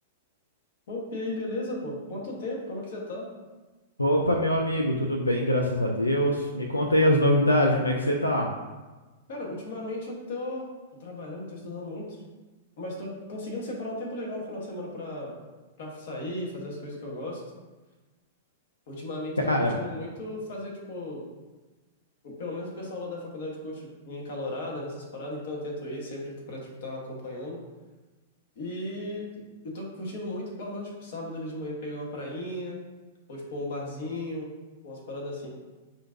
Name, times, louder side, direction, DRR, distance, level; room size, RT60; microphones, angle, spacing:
voice 1, 0.9-3.3 9.3-10.7 11.0-12.2 12.8-15.4 15.8-17.4 18.9-21.2 22.2-27.6 28.6-29.3 29.6-32.8 33.3-34.5 34.8-35.5, left 1 dB, 60° left, -2 dB, 1.0 m, -35 dB
voice 2, 4.0-8.5 19.5-19.8, equal, 90° left, 1 dB, 0.3 m, -23 dB
5.5 x 2.5 x 2.5 m, 1.2 s
figure-of-eight pair, 100°, 0 cm